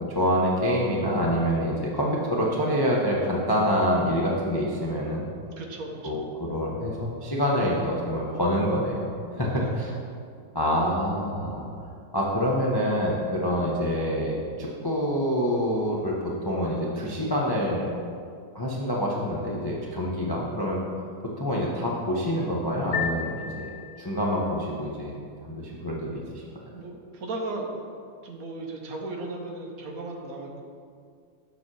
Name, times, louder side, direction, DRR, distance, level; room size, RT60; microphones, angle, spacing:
voice 1, 0.0-5.3 6.0-9.0 9.3-9.9 10.5-11.6 12.1-17.9 18.5-20.8 21.4-23.7 24.0-25.1 25.4-26.2, equal, 30° left, -4 dB, 0.4 m, -26 dB
voice 2, 5.6-6.1 9.3-9.8 26.7-27.7 28.2-30.6, right 2 dB, 65° right, 1 dB, 1.2 m, -36 dB
sound 1, 22.9-24.4, left 7 dB, 80° left, 1.2 m, -33 dB
7.1 x 4.2 x 6.1 m, 2.3 s
omnidirectional pair, 1.7 m